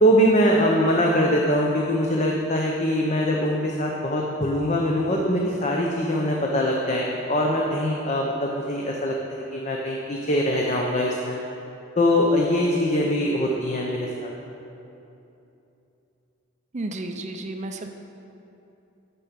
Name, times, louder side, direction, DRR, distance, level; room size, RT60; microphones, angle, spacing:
voice 1, 0.0-11.4 12.0-14.3, equal, 35° left, -1 dB, 0.8 m, -22 dB
voice 2, 16.7-17.9, right 2 dB, 35° right, 5 dB, 0.6 m, -32 dB
13.5 x 6.0 x 5.2 m, 2.9 s
head